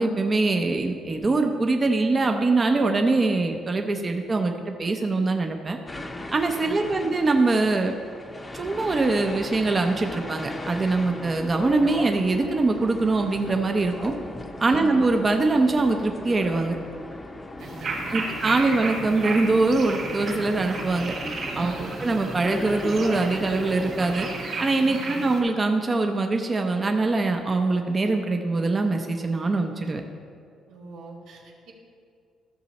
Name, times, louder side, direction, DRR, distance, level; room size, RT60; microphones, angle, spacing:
voice 1, 0.0-5.8 6.3-7.9 8.5-14.1 14.6-16.8 18.1-21.1 21.6-24.3 24.6-30.0, right 3 dB, 25° right, 4 dB, 0.6 m, -23 dB
sound 1, 5.9-24.5, left 2 dB, 15° left, 0.7 m, -37 dB
voice 2, 6.5-7.0 14.6-14.9 17.6-18.3 18.6-18.7 21.4-22.0 24.8-25.2 30.7-31.7, right 3 dB, 90° right, 0 dB, 1.5 m, -44 dB
sound 2, 17.6-25.4, right 3 dB, 55° right, 2.6 m, -34 dB
13.0 x 6.8 x 4.1 m, 2.3 s
cardioid pair, 125°, 0 cm